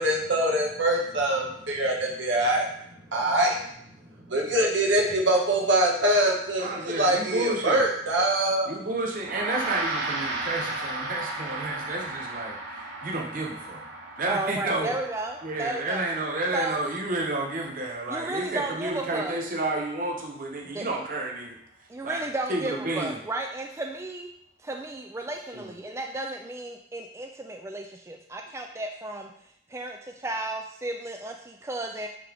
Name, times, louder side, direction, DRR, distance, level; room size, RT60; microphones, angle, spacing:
voice 1, 0.0-2.7 3.1-3.5 4.3-8.7, right 1 dB, 85° right, -1 dB, 1.6 m, -24 dB
voice 2, 6.6-7.8 8.7-13.8 14.2-14.9 15.4-21.6 22.0-22.2 22.5-23.2 25.5-25.7, right 2 dB, 45° right, 0 dB, 0.8 m, -31 dB
Gong, 9.2-18.8, right 2 dB, 65° right, 1.4 m, -36 dB
voice 3, 14.3-16.0 16.5-16.8 18.1-19.4 20.7-20.9 21.9-24.3 24.6-29.3 29.7-32.1, right 2 dB, 15° right, 3 dB, 0.3 m, -33 dB
8.4 x 3.7 x 3.4 m, 0.70 s
head